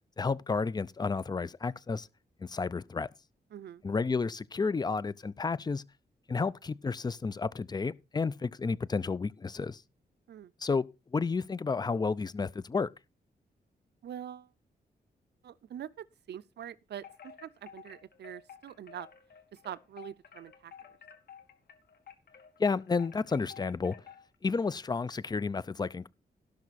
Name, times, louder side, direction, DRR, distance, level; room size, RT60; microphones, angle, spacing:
voice 1, 0.2-2.1 2.4-3.1 3.8-5.8 6.3-9.8 10.6-10.8 11.1-12.9 22.6-24.0 24.4-26.1, left 4 dB, 25° left, 0.5 m, -31 dB
voice 2, 3.5-3.8 10.3-10.5 14.0-14.5 15.4-19.1 19.5-20.7, right 10 dB, 80° right, 0.6 m, -44 dB
Wind chime, 17.0-24.3, left 8 dB, 70° left, 1.7 m, -52 dB
17.0 x 6.0 x 4.1 m
wide cardioid pair, 105°, 17 cm